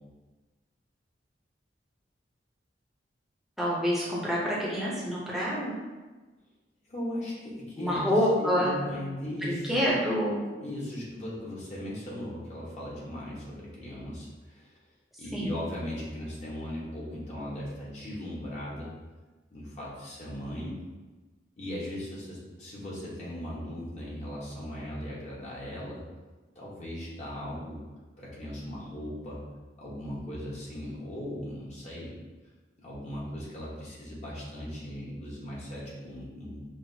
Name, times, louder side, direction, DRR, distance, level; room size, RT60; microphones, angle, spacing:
voice 1, 3.6-5.7 7.8-8.8 9.3-10.4 15.3-15.5, equal, ahead, -7 dB, 0.8 m, -27 dB
voice 2, 6.9-9.8 10.6-14.8 15.2-18.9 19.5-20.8 21.6-26.0 26.5-27.8 28.2-29.4 29.8-32.1 32.8-36.7, equal, 40° left, -6 dB, 1.1 m, -38 dB
5.6 x 2.5 x 2.7 m, 1.2 s
head